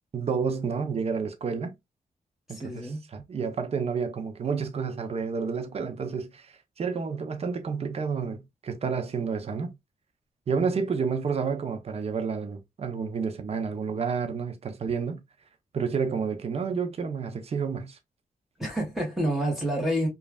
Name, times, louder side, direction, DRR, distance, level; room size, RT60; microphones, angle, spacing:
voice 1, 0.1-1.7 2.5-9.8 10.5-15.2 15.7-18.0, right 5 dB, 50° right, 0.6 m, -30 dB
voice 2, 2.5-3.0 18.6-20.1, right 1 dB, ahead, 1.3 m, -28 dB
3.1 x 2.4 x 2.3 m
cardioid pair, 75°, 14 cm